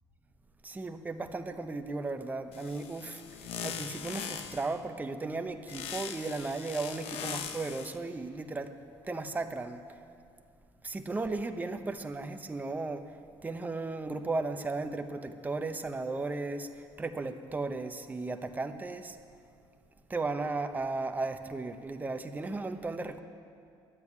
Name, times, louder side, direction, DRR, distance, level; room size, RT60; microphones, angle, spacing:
voice 1, 0.6-8.8 9.0-10.0 10.8-13.2 13.4-19.2 20.1-23.2, right 3 dB, 15° right, 7 dB, 0.8 m, -35 dB
sound 1, 2.5-4.8 5.7-8.0, left 8 dB, 85° left, 0.9 m, -40 dB
12.5 x 9.2 x 9.7 m, 2.4 s
cardioid pair, 120°, 10 cm